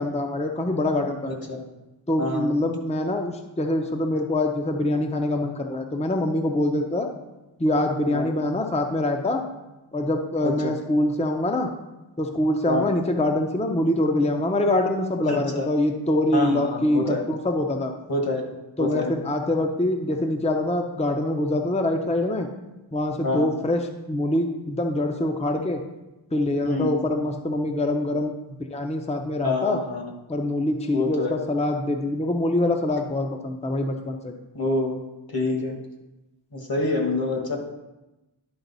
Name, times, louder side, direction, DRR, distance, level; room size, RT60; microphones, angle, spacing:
voice 1, 0.0-1.3 2.1-7.1 7.6-9.4 9.9-11.7 12.2-17.9 18.8-22.5 22.9-25.8 26.3-28.3 28.7-29.8 30.3-34.3, left 1 dB, 15° left, 4 dB, 0.6 m, -24 dB
voice 2, 1.2-1.6 2.2-2.5 8.1-8.3 10.4-10.5 12.6-12.9 15.3-15.7 16.3-17.2 18.1-18.4 18.8-19.1 23.2-23.6 26.6-27.0 29.4-30.1 30.9-31.4 34.5-35.0 35.3-35.8 36.5-37.6, left 2 dB, 50° left, 2 dB, 1.5 m, -26 dB
10.5 x 5.1 x 4.0 m, 1.0 s
wide cardioid pair, 80°, 47 cm